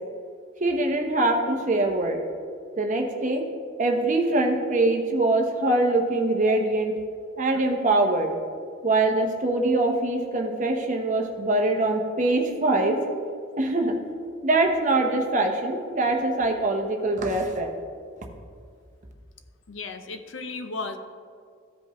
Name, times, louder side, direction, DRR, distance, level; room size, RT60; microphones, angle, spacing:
voice 1, 0.6-2.2 2.8-3.4 3.8-6.9 7.4-8.3 8.8-13.0 13.6-13.9 14.4-17.7, right 2 dB, 40° right, 2 dB, 0.9 m, -23 dB
voice 2, 19.7-21.0, left 3 dB, 65° left, 8 dB, 0.6 m, -34 dB
14.5 x 5.2 x 3.0 m, 2.2 s
head